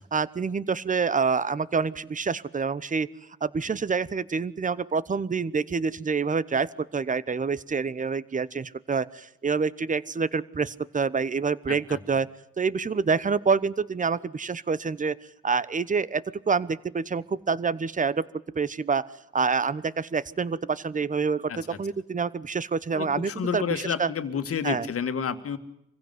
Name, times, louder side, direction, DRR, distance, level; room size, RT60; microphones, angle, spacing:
voice 1, 0.1-3.1 3.4-12.3 12.6-15.1 15.4-18.2 18.5-19.1 19.3-21.5 21.8-24.1 24.6-24.9, right 5 dB, 25° right, 19 dB, 1.0 m, -27 dB
voice 2, 11.7-12.0 21.5-21.8 22.9-25.6, left 7 dB, 50° left, 10 dB, 2.1 m, -30 dB
25.5 x 16.0 x 9.5 m, 0.82 s
cardioid pair, 90°, 30 cm